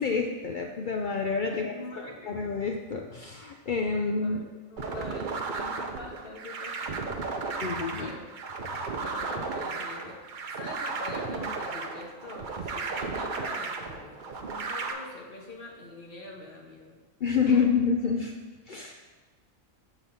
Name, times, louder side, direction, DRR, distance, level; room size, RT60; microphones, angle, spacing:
voice 1, 0.0-1.7 2.2-4.4 7.6-8.1 17.2-18.3 18.7-19.0, left 5 dB, 70° left, 2 dB, 0.4 m, -28 dB
voice 2, 1.4-2.3 4.2-7.4 7.9-8.3 9.0-10.2 10.5-17.0 17.5-17.6, left 2 dB, 45° left, -1 dB, 1.4 m, -44 dB
sound 1, 4.8-14.9, right 4 dB, 50° right, 0.6 m, -34 dB
6.9 x 3.9 x 5.9 m, 1.3 s
omnidirectional pair, 1.4 m